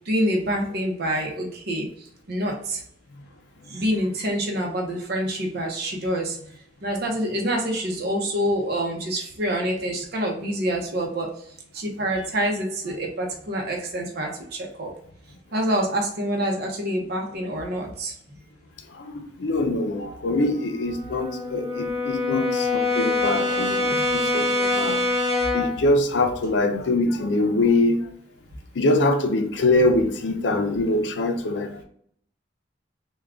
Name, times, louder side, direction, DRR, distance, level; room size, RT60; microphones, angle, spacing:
voice 1, 0.1-1.9 2.3-2.8 3.7-6.4 6.8-11.3 11.7-14.9 15.5-18.1, equal, 60° right, 0 dB, 0.7 m, -26 dB
voice 2, 18.9-25.0 25.5-28.0 28.7-31.8, left 2 dB, 75° left, 7 dB, 0.5 m, -23 dB
Brass instrument, 20.3-25.8, left 2 dB, 15° right, 1.0 m, -25 dB
3.6 x 2.2 x 3.4 m, 0.66 s
head